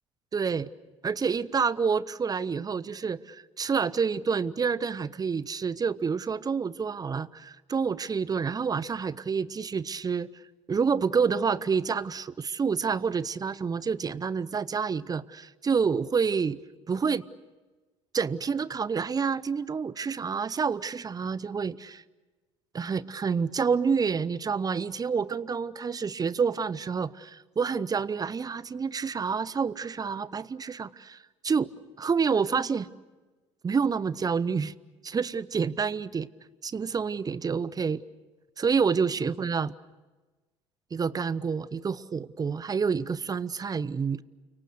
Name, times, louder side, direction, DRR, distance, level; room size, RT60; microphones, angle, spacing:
voice 1, 0.3-0.7 1.0-10.3 10.7-16.6 16.9-17.2 18.1-22.0 22.7-31.2 31.4-31.7 32.0-32.9 33.6-34.7 35.0-36.3 36.6-38.0 38.6-39.7 40.9-44.2, right 5 dB, 25° right, 20 dB, 0.8 m, -28 dB
29.5 x 25.0 x 6.6 m, 1.2 s
figure-of-eight pair, 60°, 16 cm